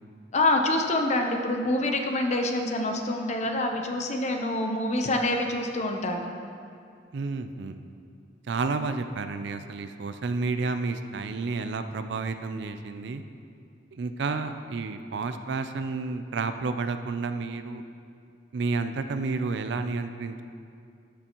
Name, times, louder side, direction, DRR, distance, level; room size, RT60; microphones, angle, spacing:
voice 1, 0.3-6.3, left 2 dB, 35° left, 3 dB, 0.7 m, -26 dB
voice 2, 7.1-7.8 8.5-13.2 13.9-17.8 18.5-20.4, right 4 dB, 60° right, 9 dB, 0.4 m, -31 dB
12.5 x 6.8 x 3.0 m, 2.4 s
head